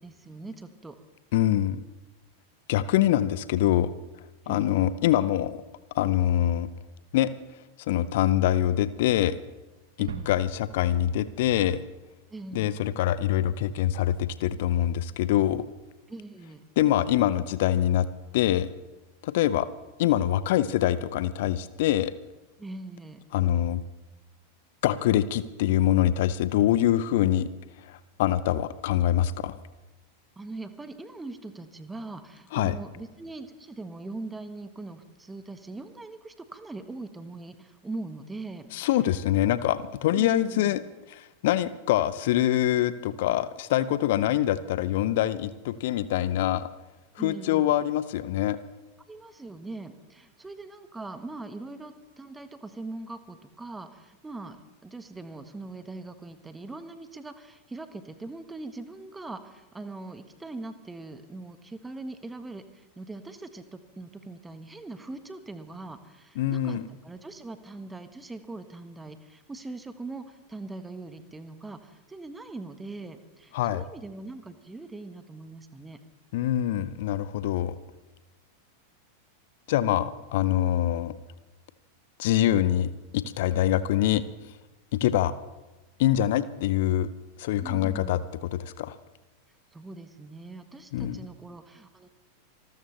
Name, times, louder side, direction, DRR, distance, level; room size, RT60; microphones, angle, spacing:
voice 1, 0.0-1.0 4.4-4.8 10.0-10.4 12.3-12.8 16.1-16.6 22.6-23.2 30.4-38.7 39.4-39.5 40.1-40.8 47.2-47.8 49.1-54.6 54.8-76.0 87.6-88.3 89.7-92.1, right 2 dB, 10° right, 10 dB, 1.3 m, -41 dB
voice 2, 1.3-1.8 2.7-3.9 4.5-5.6 5.9-6.7 7.1-7.3 7.9-9.4 10.0-11.8 12.5-15.6 16.8-18.1 18.3-18.7 19.2-19.7 20.0-22.1 23.3-23.8 24.8-27.5 27.8-29.6 32.5-32.7 38.7-40.8 41.1-46.7 47.2-48.6 66.4-66.8 73.5-73.8 76.3-77.8 79.7-81.1 82.2-84.2 84.9-85.3 86.0-87.1 87.4-88.2 88.5-89.0 90.9-91.2, left 12 dB, 55° left, 16 dB, 0.6 m, -24 dB
sound 1, 10.1-12.7, right 5 dB, 65° right, 0.8 m, -43 dB
26.5 x 13.5 x 3.3 m, 1.1 s
figure-of-eight pair, 90°, 0 cm